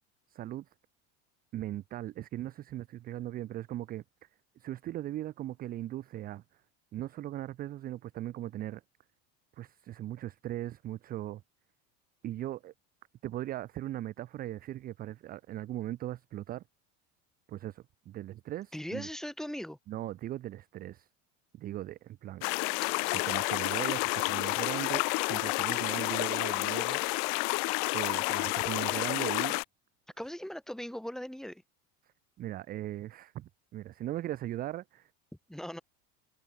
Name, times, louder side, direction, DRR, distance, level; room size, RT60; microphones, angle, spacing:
voice 1, 0.3-0.7 1.5-4.3 4.6-6.4 6.9-8.8 9.6-11.4 12.2-12.7 13.2-16.6 17.5-19.1 19.9-21.1 21.5-22.5 23.1-27.0 27.9-29.6 32.4-35.1, right 13 dB, 25° right, 0.4 m, -39 dB
voice 2, 18.7-19.8 30.2-31.6 35.5-35.8, equal, ahead, 1.8 m, -39 dB
sound 1, 22.4-29.6, left 40 dB or more, 60° left, 0.5 m, -30 dB
supercardioid pair, 130°, 34 cm